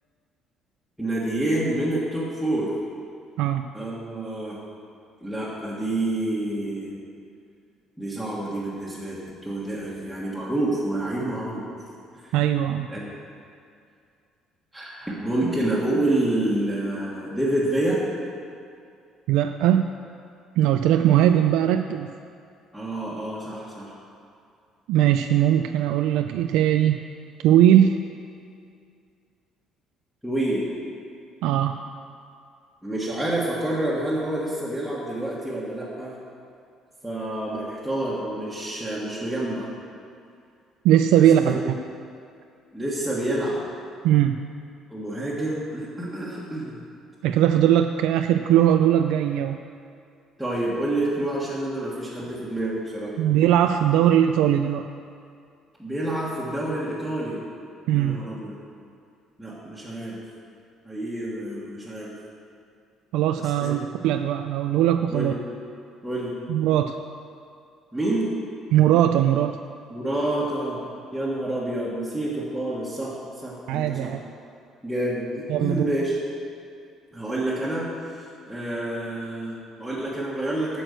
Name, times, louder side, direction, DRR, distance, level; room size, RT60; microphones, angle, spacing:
voice 1, 1.0-2.7 3.7-4.6 5.2-6.9 8.0-11.7 12.2-12.3 12.9-13.1 14.7-18.0 22.7-23.9 30.2-30.7 32.8-36.1 37.0-39.7 41.4-41.7 42.7-43.6 44.9-46.8 50.4-53.2 55.8-57.4 57.9-58.6 59.4-60.2 60.8-62.1 63.3-63.9 65.1-65.3 66.0-66.4 67.9-68.3 69.9-70.8 71.1-74.1 74.8-76.2 77.1-80.8, right 1 dB, ahead, -9 dB, 1.4 m, -28 dB
voice 2, 12.3-12.9 19.3-19.8 20.6-22.1 24.9-27.0 27.4-28.0 31.4-31.8 40.8-41.6 44.0-44.4 47.2-49.6 53.2-54.8 57.9-58.2 63.1-65.3 66.5-67.0 68.7-69.6 73.7-74.2 75.5-75.9, right 11 dB, 85° right, 7 dB, 0.3 m, -20 dB
8.8 x 6.2 x 8.0 m, 2.4 s
cardioid pair, 150°, 0 cm